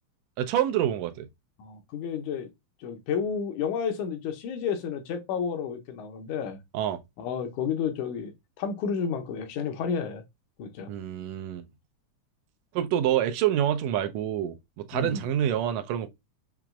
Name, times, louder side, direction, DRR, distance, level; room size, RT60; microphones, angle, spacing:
voice 1, 0.4-1.3 6.7-7.0 10.9-11.6 12.7-16.1, right 11 dB, 75° right, 1.7 m, -27 dB
voice 2, 1.6-2.5 2.8-6.6 7.2-10.2 10.6-10.9 14.9-15.2, left 6 dB, 80° left, 2.3 m, -31 dB
5.9 x 2.9 x 2.3 m
omnidirectional pair, 3.5 m